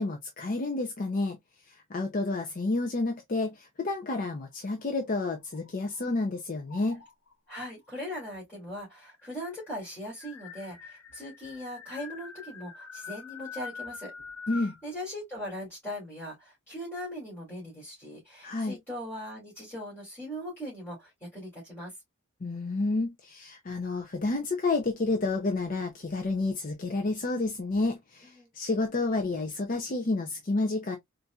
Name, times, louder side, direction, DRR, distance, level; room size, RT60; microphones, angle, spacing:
voice 1, 0.0-1.4 1.9-7.0 14.5-14.8 18.4-18.8 22.4-31.0, left 3 dB, 40° left, 0.5 m, -30 dB
sound 1, 4.8-6.2 6.7-7.3 8.3-8.4 8.7-8.8 9.1-14.8, left 5 dB, 70° left, 1.0 m, -45 dB
voice 2, 7.5-14.1 14.5-21.9 28.4-28.5, equal, 10° left, 2.2 m, -40 dB
4.1 x 2.6 x 2.3 m
head